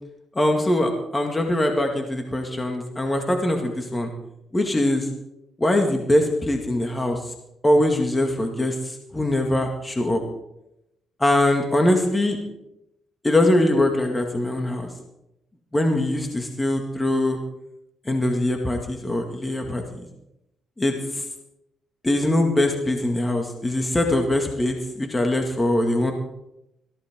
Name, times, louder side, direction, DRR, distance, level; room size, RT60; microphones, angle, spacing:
voice 1, 0.4-4.1 4.5-5.1 5.6-7.3 7.6-10.2 11.2-12.4 13.2-14.9 15.7-17.4 18.1-20.1 20.8-21.2 22.0-26.1, left 1 dB, 15° left, 3 dB, 2.1 m, -22 dB
21.5 x 15.0 x 3.8 m, 0.86 s
cardioid pair, 90°, 0 cm